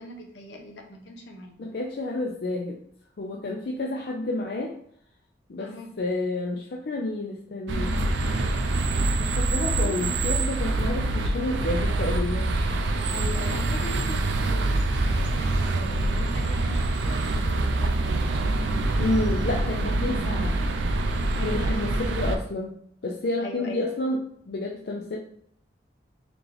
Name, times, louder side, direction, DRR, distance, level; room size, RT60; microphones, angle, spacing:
voice 1, 0.0-1.6 5.6-5.9 9.7-10.1 13.1-18.3 21.4-22.0 23.4-23.8, left 1 dB, 80° left, 3 dB, 0.8 m, -40 dB
voice 2, 1.6-2.8 3.2-4.7 5.5-5.7 6.0-8.0 9.2-12.5 19.0-20.6 21.4-22.7 23.0-24.2 24.5-25.2, left 2 dB, 60° left, 0 dB, 0.5 m, -30 dB
sound 1, 7.7-22.4, right 2 dB, 75° right, 0.5 m, -25 dB
4.0 x 3.0 x 3.4 m, 0.66 s
head